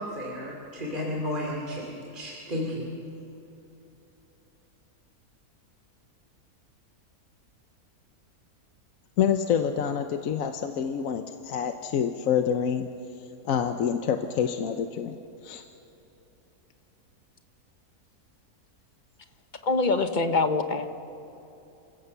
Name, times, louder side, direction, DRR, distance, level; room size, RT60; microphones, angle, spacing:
voice 1, 0.0-2.8, left 1 dB, 30° right, -2 dB, 2.8 m, -33 dB
voice 2, 9.2-12.9 13.4-15.2 15.4-15.6, left 8 dB, 65° left, 7 dB, 1.1 m, -27 dB
voice 3, 19.6-20.9, left 3 dB, 35° left, 8 dB, 0.9 m, -24 dB
27.5 x 16.0 x 6.8 m, 3.0 s
omnidirectional pair, 1.6 m